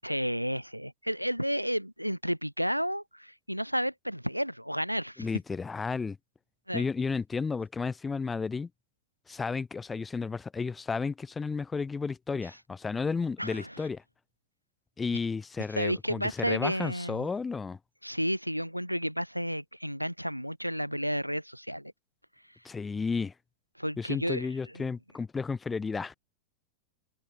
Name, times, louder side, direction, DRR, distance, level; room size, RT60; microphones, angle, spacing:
voice 1, 0.0-5.3 6.7-6.9 13.4-13.7 15.7-17.3 18.0-21.9 23.8-24.5 24.7-24.9, equal, 90° right, 0.4 m, -32 dB
voice 2, 5.2-6.2 6.7-8.7 9.3-14.0 15.0-17.8 22.6-23.3 24.0-26.2, left 4 dB, 15° left, 0.5 m, -32 dB
figure-of-eight pair, 90°, 0 cm